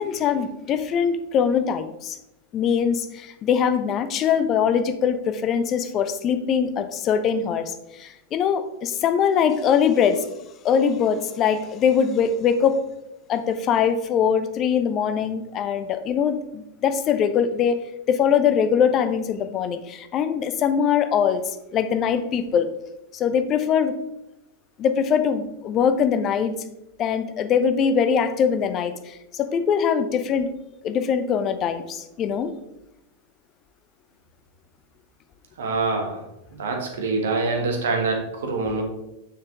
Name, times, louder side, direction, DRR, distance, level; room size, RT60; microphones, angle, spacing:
voice 1, 0.0-2.2 2.5-10.3 10.6-12.8 13.3-17.8 18.1-22.7 23.1-24.0 24.8-26.6 27.0-30.5 30.8-32.5, left 7 dB, 30° left, 10 dB, 0.7 m, -22 dB
voice 2, 35.6-36.2 36.6-38.8, right 3 dB, 60° right, 2 dB, 1.7 m, -25 dB
6.8 x 6.6 x 3.4 m, 0.90 s
figure-of-eight pair, 90°, 0 cm